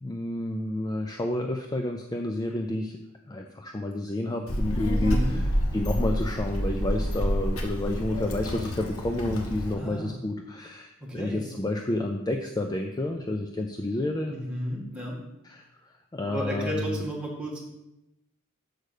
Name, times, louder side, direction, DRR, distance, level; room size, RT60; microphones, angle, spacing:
voice 1, 0.0-3.0 3.3-14.3 15.4-15.7 16.1-17.0, left 1 dB, 20° left, 4 dB, 0.4 m, -30 dB
Child speech kid speaking, 4.5-9.7, equal, 85° left, 1.2 m, -28 dB
voice 2, 5.0-5.4 9.8-10.1 11.0-11.5 14.3-15.2 16.3-17.6, equal, 5° right, -4 dB, 1.9 m, -33 dB
6.5 x 5.0 x 6.5 m, 0.90 s
head